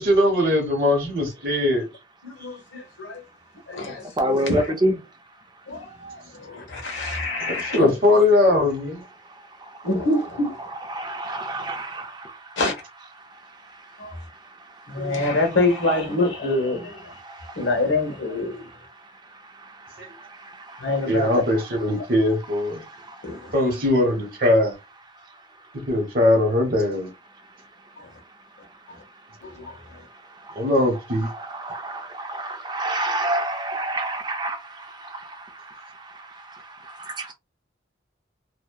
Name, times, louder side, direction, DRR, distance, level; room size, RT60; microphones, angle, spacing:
voice 1, 0.0-1.8 7.5-9.0 20.0-20.1 21.1-22.8 23.5-24.8 25.7-27.1 30.6-31.3, left 1 dB, 50° right, 0.9 m, -20 dB
voice 2, 2.2-3.2 3.7-4.0 4.3-4.6 5.7-7.9 9.8-10.6 12.6-12.7 14.0-14.1 14.9-17.1 17.6-18.7 20.8-21.3 23.2-23.5 28.0-28.1 29.4-29.7, left 2 dB, 85° left, 1.0 m, -25 dB
voice 3, 3.9-5.0 9.2-10.2 10.6-12.6 13.1-15.6 17.0-17.8 18.5-22.1 22.7-23.6 25.1-25.9 27.3-30.7 30.9-37.3, right 1 dB, 20° right, 0.4 m, -32 dB
2.7 x 2.1 x 2.2 m
head